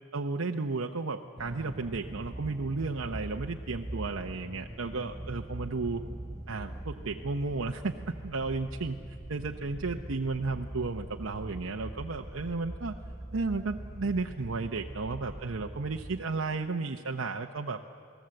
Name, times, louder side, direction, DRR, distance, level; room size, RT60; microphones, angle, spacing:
voice 1, 0.1-6.0 6.5-9.0 9.3-13.0 13.3-17.8, right 3 dB, 80° right, 3 dB, 0.8 m, -33 dB
sound 1, 1.4-16.2, right 1 dB, 15° right, 0.7 m, -42 dB
30.0 x 19.0 x 7.8 m, 2.3 s
head